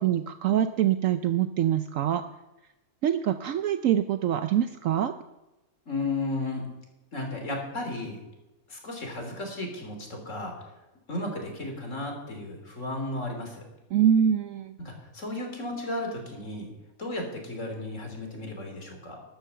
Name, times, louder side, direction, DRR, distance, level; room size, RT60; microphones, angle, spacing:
voice 1, 0.0-2.2 3.0-5.1 13.9-14.7, right 10 dB, 70° right, 10 dB, 1.0 m, -24 dB
voice 2, 5.9-6.7 7.1-8.2 8.7-10.5 11.1-13.6 14.8-16.7 17.0-19.2, left 2 dB, 55° left, 2 dB, 3.5 m, -34 dB
13.0 x 11.5 x 6.8 m, 1.0 s
omnidirectional pair, 1.5 m